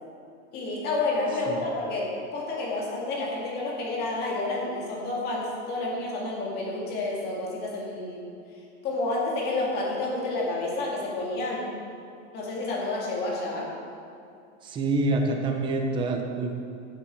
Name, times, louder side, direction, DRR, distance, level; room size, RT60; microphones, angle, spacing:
voice 1, 0.5-8.2 8.8-11.7 12.3-13.7, left 2 dB, 25° left, -3 dB, 2.1 m, -30 dB
voice 2, 14.6-16.5, right 2 dB, 15° right, 3 dB, 0.6 m, -26 dB
16.0 x 7.3 x 4.5 m, 2.6 s
supercardioid pair, 180°, 36 cm